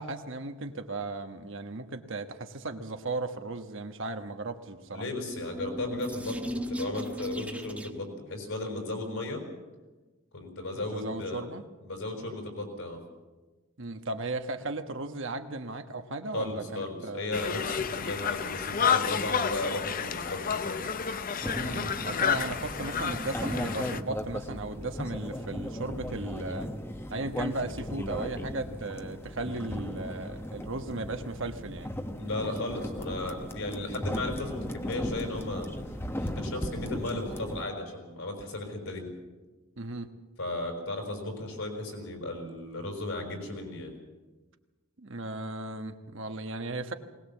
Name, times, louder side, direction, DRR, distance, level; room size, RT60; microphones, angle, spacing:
voice 1, 0.0-5.0 10.9-11.7 13.8-17.3 21.5-26.7 27.1-31.9 39.8-40.1 45.0-46.9, right 2 dB, 60° right, 6 dB, 1.3 m, -36 dB
voice 2, 4.9-9.4 10.3-11.5 11.8-13.0 16.3-20.8 32.2-35.7 36.2-39.1 40.4-43.9, left 2 dB, 70° left, 4 dB, 5.5 m, -35 dB
sound 1, 5.0-8.2, equal, 5° right, 1.2 m, -37 dB
Conversation, 17.3-24.0, left 7 dB, 40° left, 0.7 m, -30 dB
sound 2, 21.4-37.6, left 1 dB, 10° left, 1.0 m, -36 dB
20.5 x 19.0 x 7.2 m, 1.2 s
head